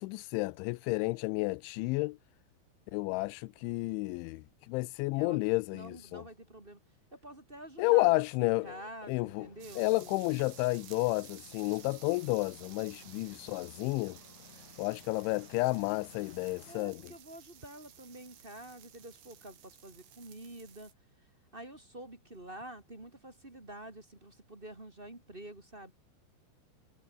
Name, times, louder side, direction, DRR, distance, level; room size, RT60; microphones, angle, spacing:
voice 1, 0.0-2.2 2.9-6.2 7.8-8.8 9.1-9.5 9.8-14.2 14.8-17.1, left 23 dB, 80° left, 2.8 m, -31 dB
voice 2, 5.1-6.8 7.1-10.2 13.0-13.3 16.6-20.9 21.2-21.3 21.5-25.9, right 1 dB, 15° right, 2.4 m, -48 dB
sound 1, 9.3-16.8, left 4 dB, 40° left, 6.1 m, -58 dB
sound 2, 9.6-20.9, right 10 dB, 75° right, 5.4 m, -55 dB
omnidirectional pair, 5.6 m